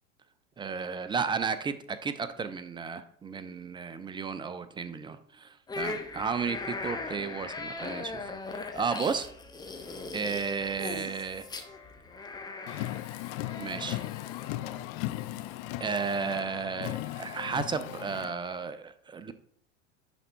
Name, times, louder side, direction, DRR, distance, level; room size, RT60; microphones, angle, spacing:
voice 1, 0.6-9.3 10.1-11.5 13.6-14.0 15.8-19.3, right 5 dB, 10° right, 12 dB, 0.5 m, -33 dB
sound 1, 5.7-14.9, left 3 dB, 10° left, 0.9 m, -39 dB
sound 2, 9.8-18.1, left 8 dB, 50° left, 1.7 m, -52 dB
Car, 12.7-18.3, left 17 dB, 35° left, 0.4 m, -37 dB
11.0 x 3.6 x 4.3 m, 0.64 s
figure-of-eight pair, 80°, 39 cm